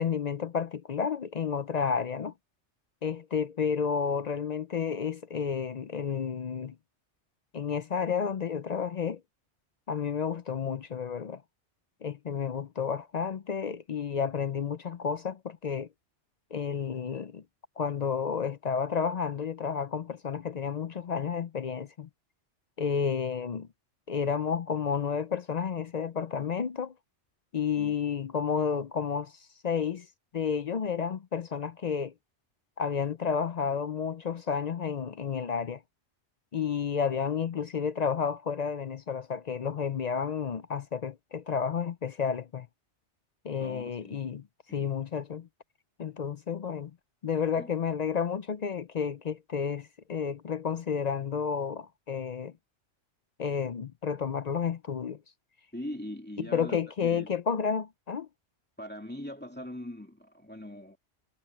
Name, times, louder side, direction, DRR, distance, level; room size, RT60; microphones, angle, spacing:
voice 1, 0.0-2.3 3.0-6.8 7.5-9.2 9.9-11.4 12.0-15.9 16.5-17.4 17.8-22.1 22.8-23.7 24.1-26.9 27.5-30.1 30.3-32.1 32.8-35.8 36.5-42.7 43.4-44.4 44.7-45.5 46.0-46.9 47.2-52.5 53.4-55.2 56.5-58.3, left 6 dB, 55° left, 0.5 m, -31 dB
voice 2, 43.6-44.3 44.7-44.8 47.6-47.7 55.7-57.4 58.8-61.0, left 1 dB, 10° left, 2.3 m, -41 dB
omnidirectional pair, 1.2 m